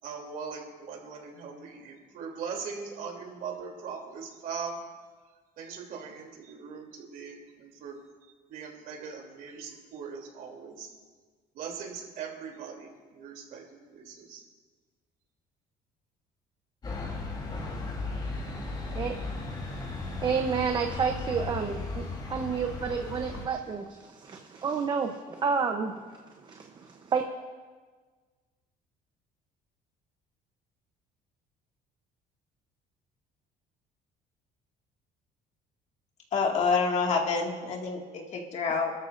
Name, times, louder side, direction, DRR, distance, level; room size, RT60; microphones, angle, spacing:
voice 1, 0.0-4.8 5.6-8.0 8.5-10.9 11.5-13.6 13.9-14.4, right 6 dB, 65° right, 0 dB, 3.1 m, -40 dB
sound 1, 16.8-23.5, left 3 dB, 30° left, 2.8 m, -36 dB
voice 2, 20.2-22.0 22.3-25.9 26.5-27.2, right 6 dB, 30° right, 4 dB, 0.8 m, -30 dB
voice 3, 36.3-38.9, left 4 dB, 45° left, 0 dB, 2.1 m, -27 dB
26.5 x 13.0 x 2.6 m, 1.5 s
cardioid pair, 150°, 16 cm